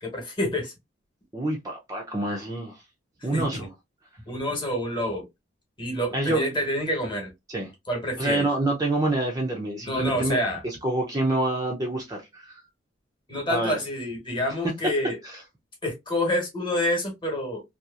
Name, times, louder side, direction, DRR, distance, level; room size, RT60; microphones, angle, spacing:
voice 1, 0.0-0.7 3.3-3.7 4.3-5.3 5.8-7.3 7.9-8.5 9.8-10.6 13.3-15.2 15.8-17.6, left 1 dB, 25° left, 1.1 m, -28 dB
voice 2, 1.3-2.8 3.2-3.7 6.1-6.4 7.5-7.7 8.2-12.6 13.5-13.8 15.2-15.4, right 2 dB, 20° right, 0.5 m, -27 dB
2.8 x 2.4 x 2.3 m
head